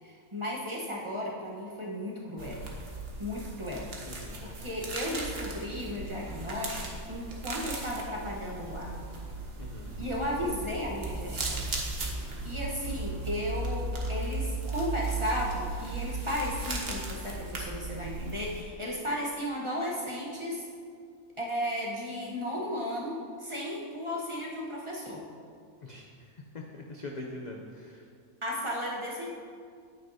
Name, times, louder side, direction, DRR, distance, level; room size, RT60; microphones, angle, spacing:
voice 1, 0.0-2.6 3.2-3.9 4.4-6.8 7.1-8.9 10.0-11.7 12.4-20.7 21.4-25.3 28.4-29.3, equal, 25° right, -4 dB, 0.9 m, -34 dB
sound 1, 2.4-18.6, right 3 dB, 45° right, 1.2 m, -36 dB
voice 2, 4.0-4.4 9.6-9.9 25.8-28.0, left 2 dB, 55° left, 0 dB, 0.5 m, -43 dB
9.5 x 8.7 x 2.7 m, 2.2 s
omnidirectional pair, 1.5 m